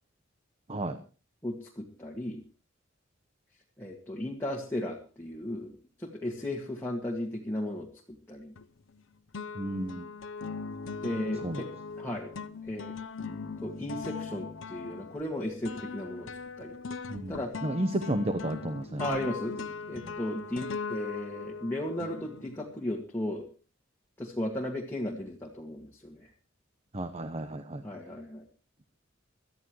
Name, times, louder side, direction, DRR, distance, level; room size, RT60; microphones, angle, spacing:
voice 1, 1.4-2.4 3.8-5.7 6.0-7.9 8.3-8.5 11.0-11.7 12.0-12.3 12.6-12.9 13.6-16.3 16.6-16.8 17.3-17.5 19.0-23.5 24.2-26.3 27.8-28.5, left 1 dB, 10° left, -2 dB, 2.0 m, -35 dB
sound 1, 8.6-9.0 9.3-22.8, left 5 dB, 75° left, 0.8 m, -40 dB
voice 2, 9.5-10.1 11.4-11.6 17.1-19.2 20.0-20.1 26.9-27.8, right 1 dB, 30° right, 9 dB, 1.0 m, -32 dB
23.0 x 13.5 x 3.2 m, 0.35 s
head